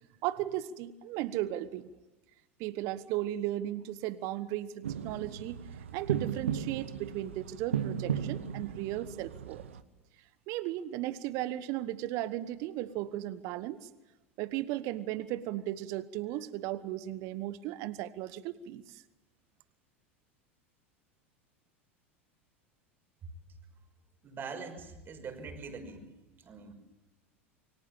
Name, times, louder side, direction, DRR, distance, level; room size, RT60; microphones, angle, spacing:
voice 1, 0.2-1.9 2.6-5.6 5.9-9.6 10.5-13.9 14.4-19.0, right 14 dB, 50° right, 16 dB, 1.2 m, -36 dB
sound 1, 4.8-9.8, right 8 dB, 70° right, 1.3 m, -36 dB
voice 2, 24.2-26.1 26.4-26.7, right 4 dB, 30° right, 6 dB, 5.8 m, -43 dB
28.5 x 24.5 x 7.4 m, 1.0 s
figure-of-eight pair, 80°, 7 cm